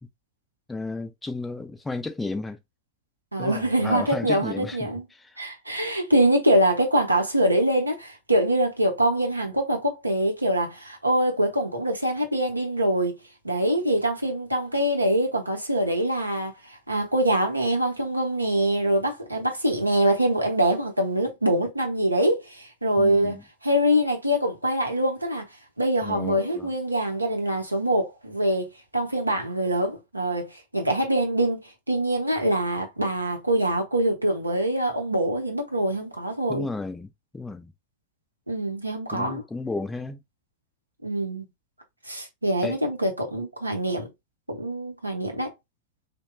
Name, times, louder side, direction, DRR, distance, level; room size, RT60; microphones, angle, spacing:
voice 1, 0.7-2.6 3.4-5.4 23.0-23.4 26.0-26.7 36.5-37.7 39.1-40.2 42.6-42.8, left 3 dB, 10° left, 0.4 m, -33 dB
voice 2, 3.3-5.0 5.4-13.2 13.4-16.5 16.9-23.4 23.6-25.4 25.8-28.7 28.9-31.6 31.9-36.7 38.5-39.4 41.0-41.4 42.1-44.1 44.5-45.5, right 1 dB, 85° right, 0.6 m, -24 dB
2.9 x 2.1 x 2.2 m
figure-of-eight pair, 90°, 0 cm